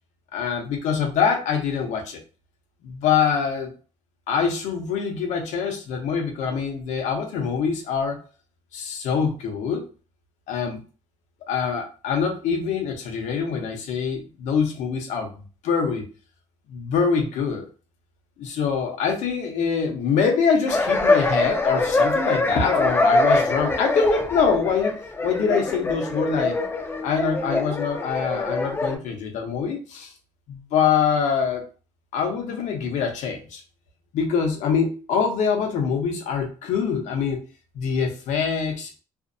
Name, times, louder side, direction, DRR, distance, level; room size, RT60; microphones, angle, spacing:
voice 1, 0.3-2.2 2.8-3.7 4.3-8.2 8.7-9.9 10.5-10.8 11.5-15.3 15.6-16.1 16.7-17.7 18.4-24.9 25.2-26.6 27.0-30.1 30.5-31.7 32.1-33.6 34.1-37.4 37.7-38.9, left 6 dB, 75° left, 3 dB, 0.8 m, -24 dB
sound 1, 20.7-29.0, left 2 dB, 20° left, 0.5 m, -23 dB
2.6 x 2.1 x 2.5 m, 0.35 s
cardioid pair, 105°, 12 cm